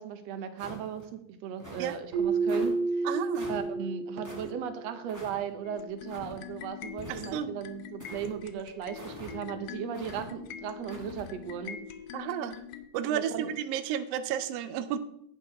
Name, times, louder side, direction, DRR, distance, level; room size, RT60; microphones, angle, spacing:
voice 1, 0.0-3.1 3.5-11.8 13.1-13.5, right 8 dB, 70° right, 9 dB, 1.8 m, -37 dB
sound 1, 0.6-1.1 1.6-1.9 2.5-2.7 3.3-3.7 4.2-4.5 5.1-5.4 6.1-6.4 7.0-7.5 8.0-8.3 8.9-9.4 9.9-10.2 10.9-11.3, equal, 10° right, 0.9 m, -45 dB
Keyboard (musical), 2.1-4.9, right 3 dB, 45° right, 2.3 m, -30 dB
voice 2, 3.0-3.5 7.1-7.5 12.1-12.6 12.9-15.0, right 9 dB, 90° right, 10 dB, 1.3 m, -32 dB
sound 2, 5.6-12.9, left 10 dB, 80° left, 1.4 m, -44 dB
10.5 x 8.4 x 3.8 m, 0.76 s
omnidirectional pair, 3.5 m